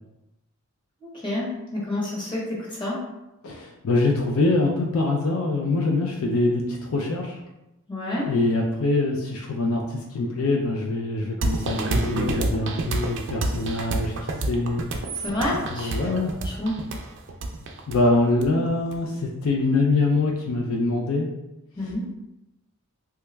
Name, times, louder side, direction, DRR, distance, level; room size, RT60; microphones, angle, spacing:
voice 1, 1.0-3.0 7.9-8.3 15.1-15.9 16.4-16.7 21.8-22.1, left 1 dB, 20° left, -7 dB, 1.1 m, -29 dB
voice 2, 3.4-7.4 8.3-14.8 15.7-16.3 17.9-21.3, left 2 dB, 75° left, 0 dB, 0.4 m, -24 dB
sound 1, 11.4-19.0, right 2 dB, 55° right, 0.4 m, -28 dB
3.1 x 2.3 x 3.3 m, 0.92 s
head